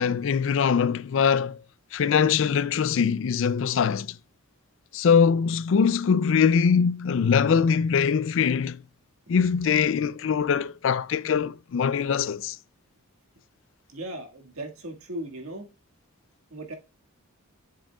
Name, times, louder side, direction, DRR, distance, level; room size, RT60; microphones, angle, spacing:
voice 1, 0.0-1.6 1.9-4.2 4.9-8.8 9.3-12.6, left 6 dB, 60° left, 0.4 m, -22 dB
voice 2, 13.9-15.7 16.5-16.7, right 1 dB, 80° right, 1.8 m, -37 dB
7.6 x 7.3 x 2.3 m
head